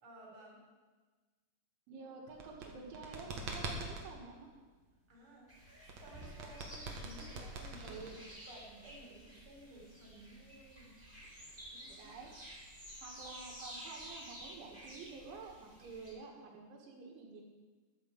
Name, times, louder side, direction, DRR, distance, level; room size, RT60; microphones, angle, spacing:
voice 1, 0.0-0.6 5.1-5.5 5.8-8.0 8.5-11.0 11.7-12.1, right 1 dB, 30° right, -2 dB, 4.2 m, -55 dB
voice 2, 1.9-4.5 7.8-8.2 11.9-12.4 13.0-17.4, right 4 dB, 85° right, 0 dB, 4.2 m, -50 dB
sound 1, 2.3-4.1 5.9-8.5, right 3 dB, 55° right, 2.1 m, -43 dB
sound 2, 5.5-16.1, equal, 5° right, 3.5 m, -52 dB
12.0 x 9.5 x 7.2 m, 1.3 s
omnidirectional pair, 5.3 m